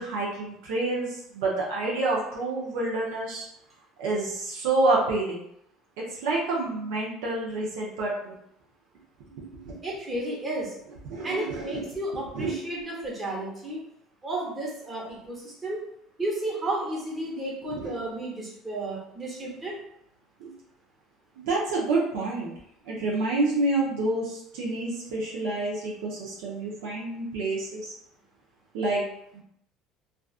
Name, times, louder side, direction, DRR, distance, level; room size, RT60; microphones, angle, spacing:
voice 1, 0.0-3.5 4.0-5.4 6.0-8.4 9.4-9.8 11.1-11.9 12.3-12.6 17.7-17.9 20.4-20.5 21.4-22.5 22.8-27.9 28.7-29.0 29.3-29.4, right 2 dB, 80° right, -4 dB, 0.6 m, -28 dB
voice 2, 9.8-10.7 11.2-13.8 14.2-15.8 16.2-19.8, right 1 dB, 25° right, -3 dB, 1.0 m, -32 dB
2.4 x 2.4 x 2.3 m, 0.74 s
hypercardioid pair, 80°, 0 cm